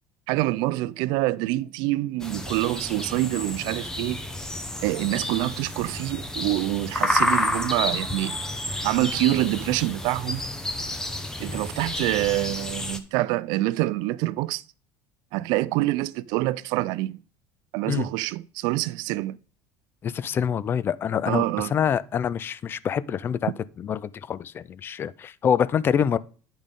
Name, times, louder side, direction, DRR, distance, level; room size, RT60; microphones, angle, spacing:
voice 1, 0.3-4.2 4.8-8.4 8.8-10.4 11.4-14.6 15.3-17.1 17.7-19.4 21.3-21.7, right 18 dB, 70° right, 0.4 m, -26 dB
sound 1, 2.2-13.0, left 1 dB, 5° left, 0.7 m, -30 dB
voice 2, 20.0-21.4 21.7-23.5 23.8-26.2, left 8 dB, 30° left, 0.4 m, -25 dB
10.0 x 5.2 x 3.6 m
cardioid pair, 130°, 8 cm